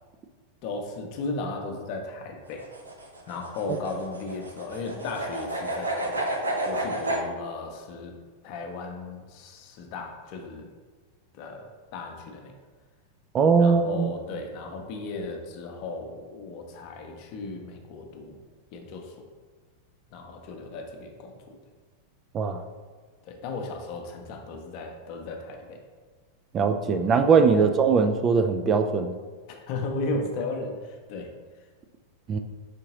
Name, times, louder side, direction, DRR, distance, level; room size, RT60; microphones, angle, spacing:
voice 1, 0.6-2.7 3.3-8.2 8.4-10.7 11.4-12.5 13.6-18.4 18.7-19.1 20.1-21.6 23.2-25.8 27.6-27.7 29.5-31.3, left 3 dB, 45° left, 3 dB, 0.7 m, -35 dB
sound 1, 2.5-7.2, right 1 dB, 75° right, 0.6 m, -31 dB
voice 2, 13.3-14.1 22.3-22.6 26.5-29.1 32.3-32.4, right 5 dB, 30° right, 6 dB, 0.3 m, -21 dB
5.1 x 3.7 x 2.8 m, 1.4 s
figure-of-eight pair, 90°, 0 cm